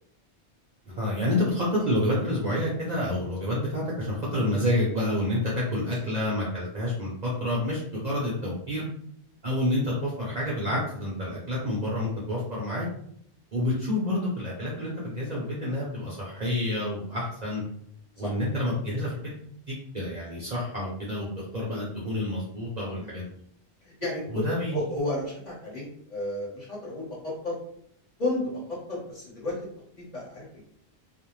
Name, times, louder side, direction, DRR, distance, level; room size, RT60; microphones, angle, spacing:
voice 1, 0.9-8.8 9.4-12.9 13.5-17.6 18.2-19.3 19.7-23.3 24.3-24.8, left 1 dB, 50° right, -5 dB, 0.6 m, -28 dB
voice 2, 23.8-24.4 24.7-27.6 28.2-29.5 30.0-30.6, left 1 dB, 40° left, -6 dB, 1.1 m, -33 dB
2.4 x 2.0 x 3.0 m, 0.67 s
omnidirectional pair, 1.1 m